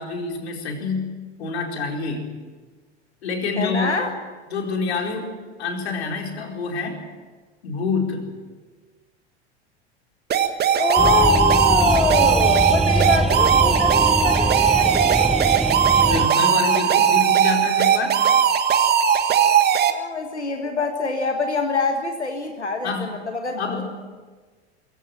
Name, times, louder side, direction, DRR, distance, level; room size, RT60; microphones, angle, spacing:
voice 1, 0.0-2.3 3.2-4.0 4.5-5.3 5.6-7.0 7.6-8.2 15.9-18.2 22.8-23.1 23.6-23.9, left 4 dB, 70° left, 1 dB, 4.6 m, -27 dB
voice 2, 3.6-4.1 10.8-15.4 19.9-23.9, left 3 dB, 85° left, 5 dB, 1.8 m, -24 dB
sound 1, 10.3-19.9, right 8 dB, 30° right, 1.8 m, -18 dB
sound 2, 11.0-16.3, right 1 dB, ahead, 0.7 m, -24 dB
23.0 x 16.0 x 8.9 m, 1.4 s
figure-of-eight pair, 85°, 33 cm